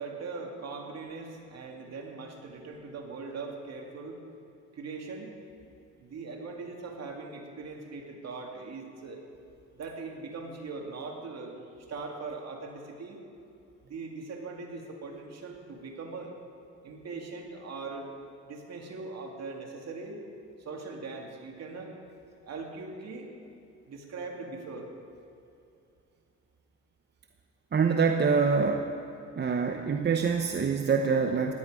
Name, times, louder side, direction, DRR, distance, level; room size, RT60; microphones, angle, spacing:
voice 1, 0.0-4.2 4.7-5.3 6.0-9.2 9.7-13.2 13.8-16.3 16.8-18.1 18.4-20.2 20.6-21.9 22.4-23.3 23.9-24.9, right 4 dB, 60° right, 1 dB, 2.4 m, -40 dB
voice 2, 27.7-28.9 29.4-31.5, right 5 dB, 35° right, 4 dB, 0.8 m, -25 dB
17.0 x 11.0 x 5.0 m, 2.7 s
cardioid pair, 90°, 30 cm